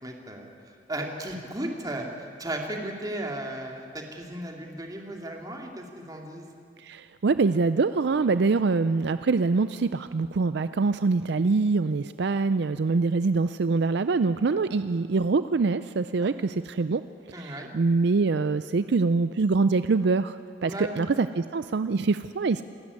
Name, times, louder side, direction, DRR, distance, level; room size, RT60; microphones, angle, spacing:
voice 1, 0.0-6.5 16.2-16.3 17.3-17.7 20.6-21.1, right 1 dB, 20° right, 1 dB, 2.6 m, -35 dB
voice 2, 6.8-17.0 17.3-22.6, right 4 dB, 65° right, 12 dB, 0.5 m, -24 dB
27.0 x 12.5 x 9.7 m, 2.5 s
head